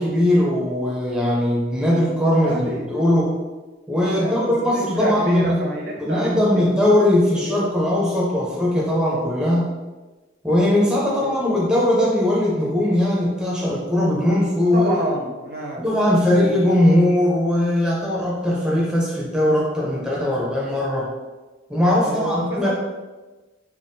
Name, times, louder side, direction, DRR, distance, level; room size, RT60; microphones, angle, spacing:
voice 1, 0.0-3.3 3.9-5.6 6.0-9.8 10.4-14.9 15.8-21.1 21.7-22.7, left 1 dB, 5° right, -6 dB, 0.5 m, -20 dB
voice 2, 2.3-2.8 4.1-6.8 7.3-7.6 11.2-11.4 14.7-15.9 16.5-16.7 22.0-22.7, right 1 dB, 55° right, -2 dB, 0.7 m, -28 dB
3.4 x 2.3 x 2.6 m, 1.2 s
head